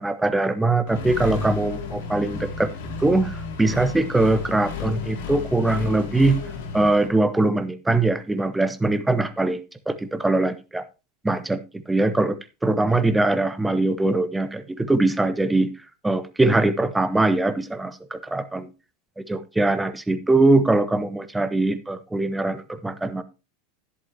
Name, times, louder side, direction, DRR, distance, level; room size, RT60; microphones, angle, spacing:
voice 1, 0.0-2.7 3.0-6.4 6.7-10.8 11.2-11.6 11.9-12.4 12.6-15.7 16.0-18.7 19.3-23.2, right 2 dB, 10° right, 1.0 m, -22 dB
Accelerating revving vroom, 0.9-7.1, left 5 dB, 65° left, 2.3 m, -33 dB
11.0 x 11.0 x 2.8 m
hypercardioid pair, 85°, 0 cm